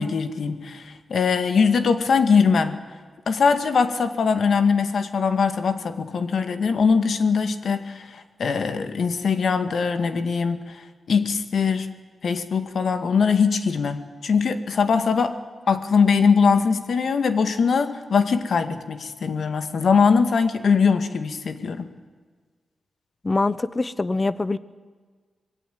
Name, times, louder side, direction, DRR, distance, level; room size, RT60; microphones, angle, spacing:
voice 1, 0.0-2.8 3.3-10.8 11.1-11.9 12.2-15.4 15.7-21.9, left 5 dB, 65° left, 9 dB, 2.0 m, -21 dB
voice 2, 23.2-24.6, left 3 dB, 25° left, 16 dB, 0.9 m, -24 dB
26.0 x 21.5 x 9.5 m, 1.5 s
wide cardioid pair, 140°, 0 cm